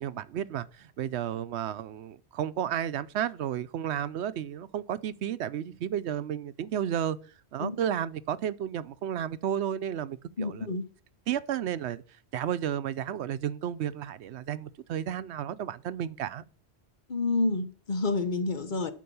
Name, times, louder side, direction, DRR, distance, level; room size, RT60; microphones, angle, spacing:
voice 1, 0.0-7.2 7.5-10.7 11.3-12.0 12.3-16.4, right 10 dB, 80° right, 0.9 m, -32 dB
voice 2, 10.4-10.8 17.1-18.9, left 3 dB, 50° left, 1.0 m, -29 dB
12.0 x 4.6 x 6.9 m
omnidirectional pair, 1.1 m